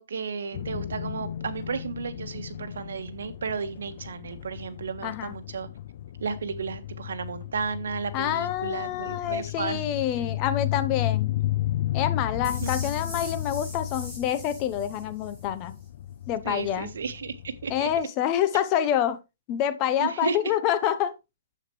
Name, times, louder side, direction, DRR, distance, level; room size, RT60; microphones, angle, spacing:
voice 1, 0.0-5.7 6.2-9.9 12.6-12.7 16.4-17.9 20.0-20.4, right 5 dB, 80° right, 1.5 m, -33 dB
sound 1, 0.5-18.0, left 13 dB, 50° left, 0.3 m, -34 dB
voice 2, 5.0-5.4 8.1-11.3 11.9-15.8 16.3-16.9 17.7-19.2 19.5-21.1, left 10 dB, 25° left, 0.8 m, -27 dB
sound 2, 12.4-15.5, left 1 dB, 5° left, 4.5 m, -42 dB
8.9 x 8.0 x 3.2 m
hypercardioid pair, 165°, 0 cm